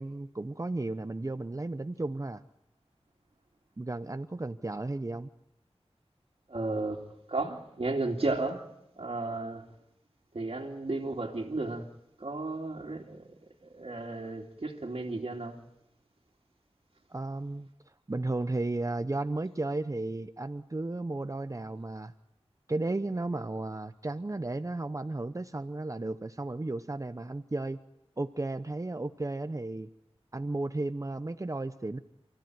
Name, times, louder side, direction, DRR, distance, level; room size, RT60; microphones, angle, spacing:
voice 1, 0.0-2.4 3.8-5.3 17.1-17.7 18.1-22.1 22.7-27.8 28.2-29.9 30.3-32.0, right 2 dB, 30° right, 0.8 m, -34 dB
voice 2, 6.5-8.6 9.0-9.7 10.3-11.9 12.2-13.3 13.6-15.6, right 2 dB, 60° right, 2.6 m, -34 dB
29.5 x 15.5 x 9.3 m
wide cardioid pair, 70°, 11 cm